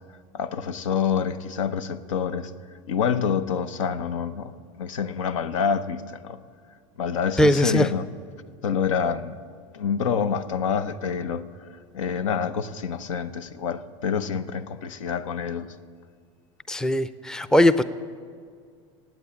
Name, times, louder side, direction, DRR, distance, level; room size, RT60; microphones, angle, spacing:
voice 1, 0.3-2.5 2.9-6.4 7.0-8.1 8.6-9.3 9.7-11.5 11.9-15.7, left 6 dB, 90° left, 0.7 m, -27 dB
voice 2, 7.4-7.9 16.7-17.8, equal, 5° left, 0.5 m, -20 dB
16.5 x 9.1 x 8.7 m
supercardioid pair, 105°, 16 cm